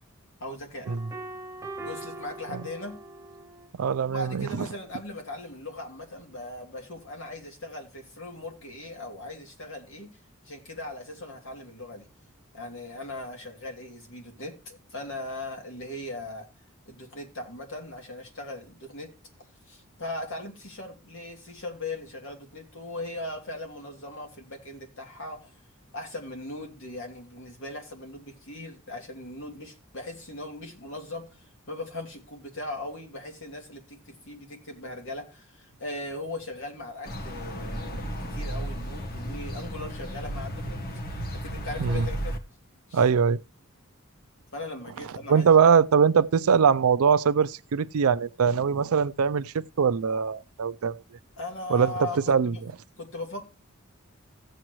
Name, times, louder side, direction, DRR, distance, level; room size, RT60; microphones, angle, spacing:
voice 1, 0.4-1.0 1.8-3.0 4.1-10.1 10.4-12.1 12.5-16.5 16.9-19.1 19.7-25.5 25.9-40.8 41.3-42.3 42.9-43.0 44.5-45.5 51.4-52.6 53.0-53.4, left 2 dB, 65° left, 2.7 m, -39 dB
sound 1, 0.9-3.7, right 2 dB, 15° right, 0.7 m, -41 dB
voice 2, 3.8-4.6 41.8-42.1 42.9-43.4 45.3-50.9 51.7-51.9 52.3-52.5, right 6 dB, 85° right, 0.5 m, -22 dB
sound 2, 37.1-42.4, equal, 45° left, 1.3 m, -34 dB
15.5 x 7.6 x 3.1 m
head